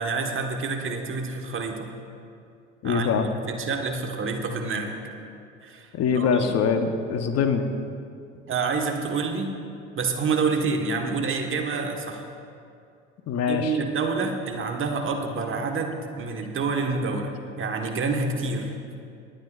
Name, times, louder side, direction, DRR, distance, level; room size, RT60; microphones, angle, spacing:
voice 1, 0.0-1.9 2.8-5.0 5.6-6.5 8.5-9.6 9.9-12.3 13.5-19.0, right 4 dB, 35° right, 3 dB, 1.4 m, -28 dB
voice 2, 2.8-3.3 5.9-7.7 13.3-13.8, left 6 dB, 45° left, 7 dB, 1.0 m, -23 dB
26.0 x 9.4 x 2.5 m, 2.5 s
hypercardioid pair, 75°, 36 cm